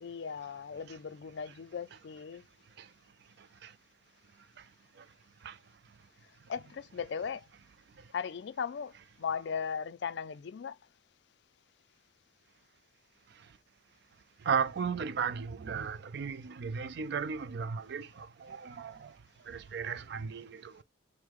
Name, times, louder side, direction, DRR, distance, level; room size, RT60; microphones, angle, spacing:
voice 1, 0.0-2.4 6.5-7.5 8.1-10.8, left 6 dB, 55° left, 0.4 m, -37 dB
voice 2, 3.4-3.7 4.6-4.7 5.0-5.1 5.4-5.6 14.4-19.2 19.4-20.8, right 6 dB, 55° right, 0.4 m, -35 dB
4.6 x 2.1 x 3.5 m
head